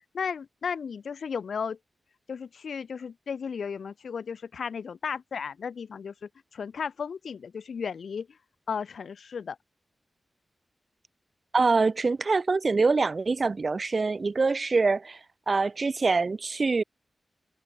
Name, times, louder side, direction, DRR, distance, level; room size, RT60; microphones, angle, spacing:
voice 1, 0.1-1.8 2.3-8.3 8.7-9.6, left 6 dB, 75° left, 0.6 m, -34 dB
voice 2, 11.5-15.2 15.5-16.8, right 4 dB, 35° right, 0.3 m, -24 dB
wide cardioid pair, 170°, 0 cm